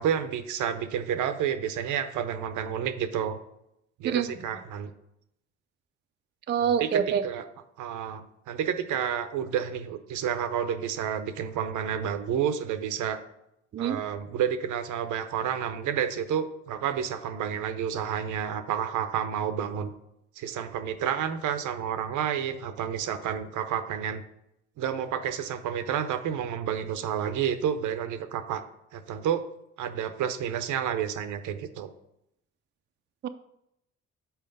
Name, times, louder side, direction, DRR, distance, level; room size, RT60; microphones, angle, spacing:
voice 1, 0.0-3.4 4.0-4.9 6.8-7.5 7.8-13.2 13.8-19.9 20.4-24.2 24.8-28.6 28.9-29.4 29.8-31.9, right 8 dB, 80° right, 10 dB, 0.6 m, -30 dB
voice 2, 6.5-7.2 13.7-14.0 33.2-33.3, right 8 dB, 35° right, 10 dB, 0.4 m, -26 dB
5.7 x 4.5 x 5.3 m, 0.81 s
cardioid pair, 90°, 30 cm